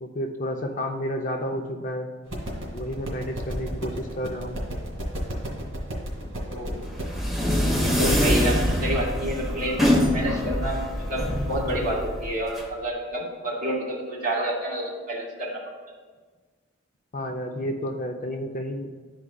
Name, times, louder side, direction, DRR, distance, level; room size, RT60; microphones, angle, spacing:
voice 1, 0.0-2.1 2.7-4.6 6.2-6.3 17.1-18.9, equal, 35° left, 3 dB, 0.4 m, -31 dB
sound 1, 2.3-7.3, equal, 65° right, 2.1 m, -33 dB
voice 2, 6.4-6.8 7.8-15.6, right 1 dB, 40° right, -5 dB, 2.1 m, -29 dB
sound 2, 6.8-12.6, equal, ahead, 1.0 m, -24 dB
12.0 x 4.8 x 2.2 m, 1.4 s
head